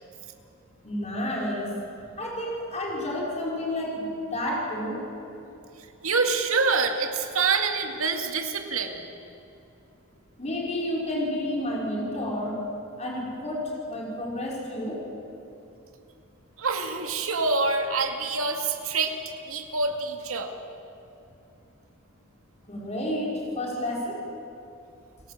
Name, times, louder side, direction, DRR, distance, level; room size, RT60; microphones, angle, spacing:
voice 1, 0.8-1.8 2.2-5.0 10.4-12.7 13.0-15.0 22.7-24.2, left 1 dB, 35° left, -3 dB, 5.7 m, -30 dB
voice 2, 6.0-9.0 16.6-19.2 19.5-20.5, right 4 dB, 80° right, 4 dB, 2.3 m, -26 dB
29.5 x 18.5 x 7.7 m, 2.8 s
head